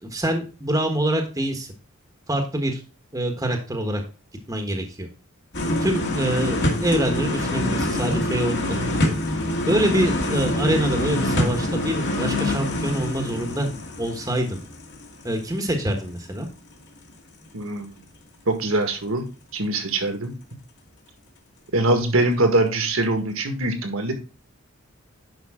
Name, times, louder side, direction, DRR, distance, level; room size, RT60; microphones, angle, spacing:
voice 1, 0.0-1.7 2.3-2.8 3.1-4.0 4.5-5.1 5.8-8.9 9.7-13.7 14.0-14.6 15.2-16.5, right 1 dB, 15° right, 4 dB, 1.3 m, -25 dB
sound 1, 5.5-15.4 15.7-15.8, left 1 dB, 55° left, 2.2 m, -25 dB
voice 2, 17.5-17.9 18.5-19.2 19.5-20.3 21.7-24.1, right 2 dB, 70° right, 6 dB, 1.8 m, -22 dB
10.5 x 5.4 x 3.7 m, 0.32 s
head